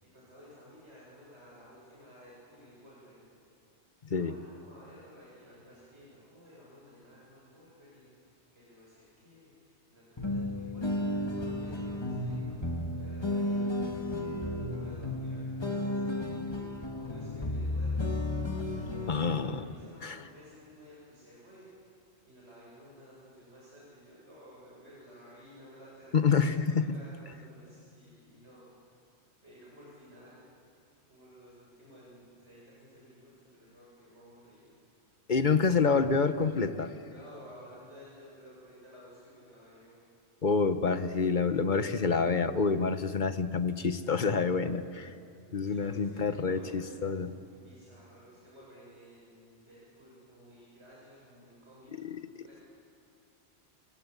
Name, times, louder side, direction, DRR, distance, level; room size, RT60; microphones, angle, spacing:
voice 1, 0.0-3.3 4.0-14.1 14.5-16.4 16.9-18.3 18.7-21.7 22.2-26.3 26.7-28.7 29.4-30.5 31.1-34.8 37.1-40.0 45.6-52.1 52.4-52.6, equal, 75° right, -6 dB, 7.9 m, -54 dB
sound 1, 10.2-19.6, left 1 dB, 25° left, 1.8 m, -33 dB
voice 2, 19.1-19.7 20.0-20.2 26.1-26.9 35.3-36.9 40.4-45.1 45.5-47.3 52.0-52.2, left 5 dB, 45° left, 10 dB, 1.2 m, -27 dB
29.5 x 24.0 x 8.4 m, 2.5 s
omnidirectional pair, 1.1 m